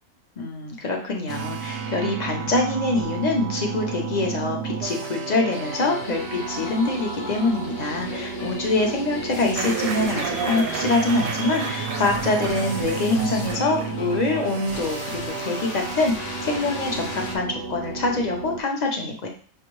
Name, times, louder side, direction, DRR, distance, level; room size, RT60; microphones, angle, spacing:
voice 1, 0.4-19.3, left 2 dB, 40° left, 1 dB, 0.8 m, -25 dB
sound 1, 1.3-18.6, right 6 dB, 65° right, 0.6 m, -33 dB
sound 2, 5.5-17.3, left 3 dB, 65° left, 1.1 m, -37 dB
sound 3, 9.5-15.2, right 6 dB, 90° right, 1.0 m, -32 dB
5.9 x 2.6 x 3.1 m, 0.42 s
omnidirectional pair, 1.4 m